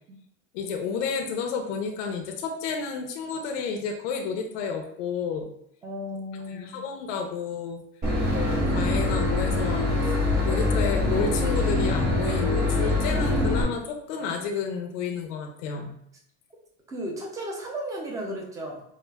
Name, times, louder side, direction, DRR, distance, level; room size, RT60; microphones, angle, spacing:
voice 1, 0.5-5.5 6.5-7.8 8.3-10.2 10.4-16.0, left 5 dB, 80° left, 3 dB, 0.7 m, -31 dB
voice 2, 5.8-6.8 16.9-18.8, equal, 10° right, -1 dB, 0.3 m, -34 dB
Boat Water vehicle / Engine, 8.0-13.6, left 2 dB, 25° right, 0.9 m, -24 dB
4.7 x 2.4 x 2.2 m, 0.71 s
supercardioid pair, 160°, 36 cm